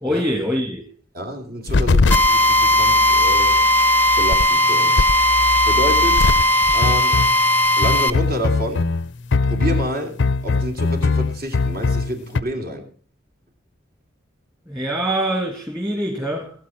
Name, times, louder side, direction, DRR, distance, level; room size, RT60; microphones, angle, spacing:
voice 1, 0.0-0.8 14.7-16.5, equal, 15° right, 1.9 m, -24 dB
voice 2, 1.1-3.6 4.2-5.1 5.4-6.3 6.7-7.2 7.8-8.9 9.5-12.9, equal, 50° right, 2.8 m, -29 dB
sound 1, 1.7-12.4, left 3 dB, 70° left, 0.5 m, -22 dB
Drill, 2.1-8.1, left 1 dB, 10° left, 0.7 m, -17 dB
17.5 x 8.0 x 5.7 m
head